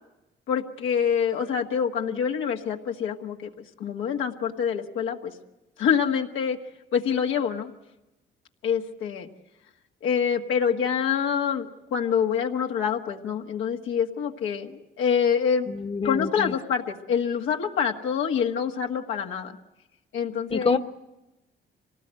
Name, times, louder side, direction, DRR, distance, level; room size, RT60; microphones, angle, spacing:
voice 1, 0.5-3.5 3.8-5.3 5.8-6.6 6.9-7.7 8.6-9.3 10.0-15.7 16.0-19.6 20.1-20.7, left 7 dB, 85° left, 2 dB, 1.7 m, -26 dB
voice 2, 15.7-16.5 20.5-20.8, left 4 dB, 30° left, 8 dB, 1.1 m, -26 dB
25.0 x 18.5 x 7.7 m, 0.98 s
cardioid pair, 90°, 20 cm